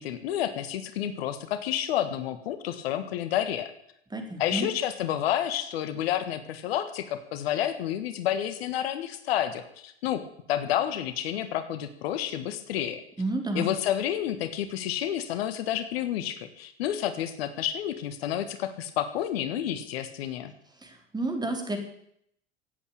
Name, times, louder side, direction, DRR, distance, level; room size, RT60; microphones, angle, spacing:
voice 1, 0.0-3.7 4.4-13.0 13.5-20.5, left 11 dB, 70° left, 11 dB, 1.6 m, -30 dB
voice 2, 4.1-4.7 13.2-13.7 20.8-21.8, right 2 dB, 15° right, 4 dB, 4.0 m, -30 dB
16.5 x 8.6 x 8.6 m, 0.72 s
hypercardioid pair, 80°, 31 cm